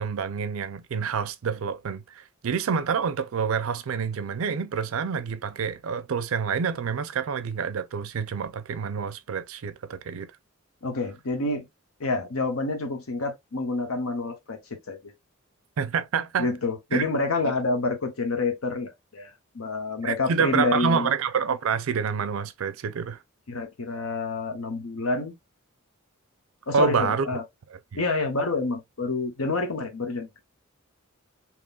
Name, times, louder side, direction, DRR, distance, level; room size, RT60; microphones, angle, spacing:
voice 1, 0.0-10.3 15.8-16.5 16.9-17.0 20.0-23.2 26.7-27.3 27.9-28.0, right 6 dB, 70° right, 0.4 m, -27 dB
voice 2, 10.8-11.7 12.0-14.6 14.9-15.0 16.4-21.1 23.5-25.3 26.7-27.4 27.9-30.3, left 3 dB, 85° left, 0.9 m, -28 dB
3.7 x 2.9 x 2.3 m
head